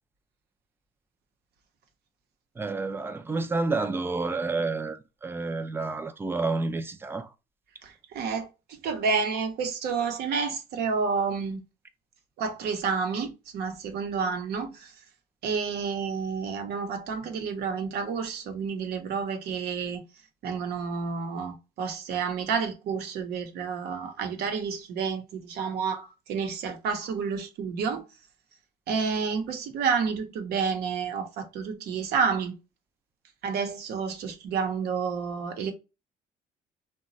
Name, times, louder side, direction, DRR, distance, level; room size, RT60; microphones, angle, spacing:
voice 1, 2.6-7.3, right 3 dB, 15° right, 0.4 m, -29 dB
voice 2, 7.8-11.6 12.4-14.9 15.4-20.0 20.4-28.0 28.9-32.5 33.4-35.7, right 5 dB, 75° right, 0.8 m, -30 dB
2.9 x 2.2 x 2.6 m
cardioid pair, 110°, 17 cm